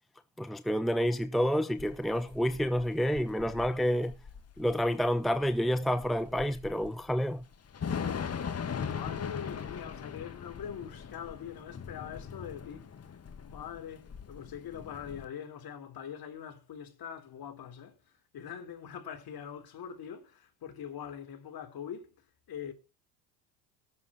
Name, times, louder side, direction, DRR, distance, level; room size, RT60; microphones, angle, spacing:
voice 1, 0.4-4.1 4.6-7.4, equal, ahead, 0.9 m, -29 dB
Thunder / Rain, 1.8-15.3, left 7 dB, 30° left, 2.1 m, -40 dB
voice 2, 8.6-13.0 13.4-22.2 22.5-22.7, left 8 dB, 45° left, 3.9 m, -43 dB
19.0 x 7.1 x 4.5 m
hypercardioid pair, 70°, 50 cm